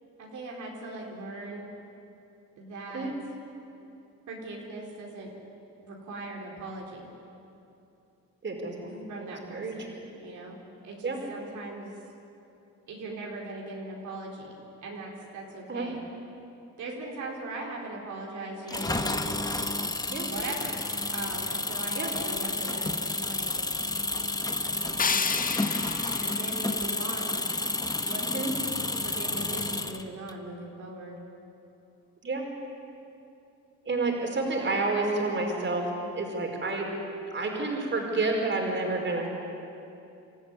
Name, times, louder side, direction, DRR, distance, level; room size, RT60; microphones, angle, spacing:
voice 1, 0.2-1.7 2.6-3.1 4.3-5.3 5.8-7.1 9.1-11.9 12.9-14.4 14.8-16.1 16.8-19.4 20.3-22.9 23.2-23.5 24.8-25.7 26.0-27.5 28.0-28.3 29.0-31.2, right 2 dB, 75° right, -2 dB, 4.4 m, -40 dB
voice 2, 8.4-9.7 10.0-10.1 11.0-11.2 15.7-15.9 20.1-20.3 21.9-22.1 28.3-28.5 32.2-32.5 33.8-35.9 36.1-36.9 37.3-39.3, right 3 dB, 40° right, 1 dB, 5.0 m, -29 dB
Engine, 18.7-30.3, left 2 dB, 10° left, 1.3 m, -30 dB
sound 1, 25.0-28.0, left 6 dB, 30° left, 0.7 m, -33 dB
28.0 x 14.0 x 9.9 m, 2.8 s
cardioid pair, 90°, 30 cm